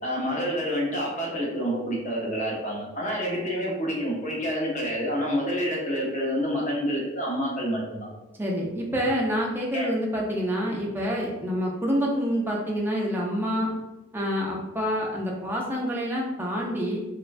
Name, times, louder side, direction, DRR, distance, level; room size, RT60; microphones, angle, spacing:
voice 1, 0.0-8.1 9.7-9.9, equal, 35° left, -3 dB, 0.7 m, -28 dB
voice 2, 8.4-13.7 14.1-17.0, equal, 10° right, -2 dB, 0.4 m, -27 dB
3.0 x 2.2 x 2.4 m, 1.0 s
head